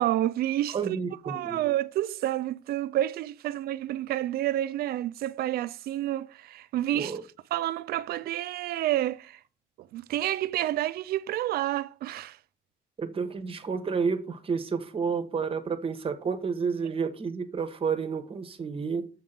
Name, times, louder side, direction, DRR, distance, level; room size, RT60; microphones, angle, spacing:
voice 1, 0.0-1.0 1.2-7.2 7.5-9.4 9.8-12.4, right 13 dB, 65° right, 0.5 m, -29 dB
voice 2, 0.7-1.6 6.9-7.2 13.0-19.1, right 5 dB, 35° right, 1.1 m, -30 dB
7.3 x 3.8 x 5.7 m
cardioid pair, 110°, 17 cm